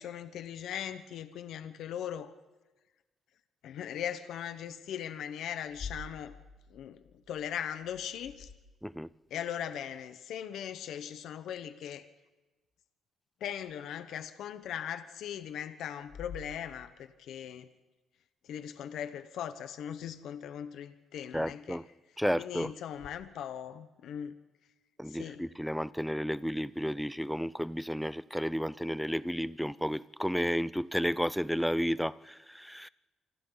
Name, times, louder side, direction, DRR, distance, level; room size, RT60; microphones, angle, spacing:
voice 1, 0.0-2.3 3.6-6.3 6.7-8.5 9.3-12.1 13.4-17.7 18.4-21.8 22.4-24.3 25.1-25.4, left 9 dB, 80° left, 1.2 m, -39 dB
sound 1, 5.6-9.2 13.6-13.7 14.6-14.8 16.0-17.3 22.9-23.1, left 4 dB, 45° left, 2.0 m, -48 dB
voice 2, 21.3-21.8 22.2-22.7 25.0-32.9, equal, ahead, 0.6 m, -32 dB
27.5 x 25.5 x 4.1 m
cardioid pair, 90°, 0 cm